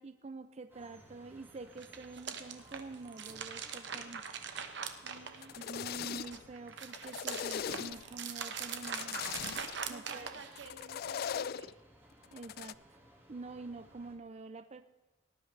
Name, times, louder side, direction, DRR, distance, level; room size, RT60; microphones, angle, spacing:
voice 1, 0.0-4.2 5.6-9.2 9.9-10.3 12.3-12.8 13.3-14.8, right 3 dB, 35° right, 10 dB, 0.5 m, -47 dB
sound 1, 0.7-14.2, equal, 10° right, 2.0 m, -61 dB
sound 2, 1.7-5.8 6.2-10.8, right 6 dB, 65° right, 1.1 m, -42 dB
voice 2, 5.0-5.6 9.9-11.8, right 3 dB, 90° right, 5 dB, 1.7 m, -52 dB
Digital Nanobot Foreplay, 5.3-6.5 6.8-8.2 8.6-9.8 10.6-11.7 12.2-12.7, left 8 dB, 55° left, 0.3 m, -40 dB
18.5 x 11.0 x 3.3 m, 1.1 s
head